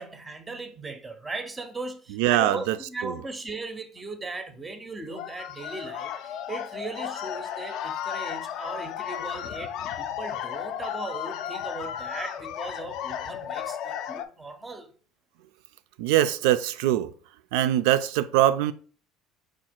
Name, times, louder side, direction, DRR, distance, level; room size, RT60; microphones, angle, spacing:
voice 1, 0.0-6.1 6.5-14.9, right 3 dB, 10° right, 0.5 m, -38 dB
voice 2, 2.1-2.8 3.0-3.2 16.0-17.1 17.5-18.7, right 13 dB, 85° right, 0.4 m, -22 dB
sound 1, 5.1-14.3, left 9 dB, 55° left, 0.4 m, -34 dB
4.9 x 2.4 x 4.3 m
cardioid pair, 160°, 0 cm